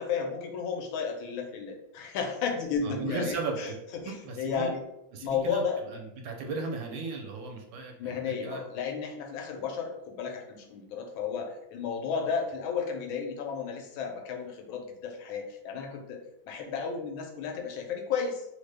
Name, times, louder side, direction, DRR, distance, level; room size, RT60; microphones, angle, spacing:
voice 1, 0.0-4.8 5.2-5.8 8.0-18.5, left 6 dB, 85° left, 2 dB, 1.4 m, -33 dB
voice 2, 2.8-3.8 4.1-4.7 5.1-8.6, right 4 dB, 80° right, 2 dB, 1.3 m, -36 dB
3.4 x 2.1 x 3.3 m, 0.84 s
omnidirectional pair, 2.1 m